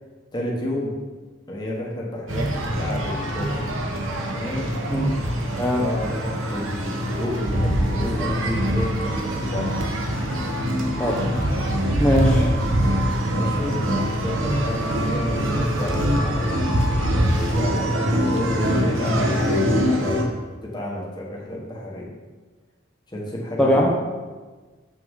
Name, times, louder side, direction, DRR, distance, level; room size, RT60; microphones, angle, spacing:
voice 1, 0.3-0.9 1.5-3.6 4.3-4.7 5.7-9.8 13.3-20.3 20.6-22.1 23.1-23.9, left 1 dB, 20° left, -3 dB, 1.3 m, -31 dB
sound 1, 2.3-20.2, equal, 80° right, 1.1 m, -23 dB
voice 2, 12.0-12.5 23.6-23.9, equal, 5° left, -5 dB, 0.8 m, -20 dB
7.7 x 6.3 x 3.7 m, 1.3 s
head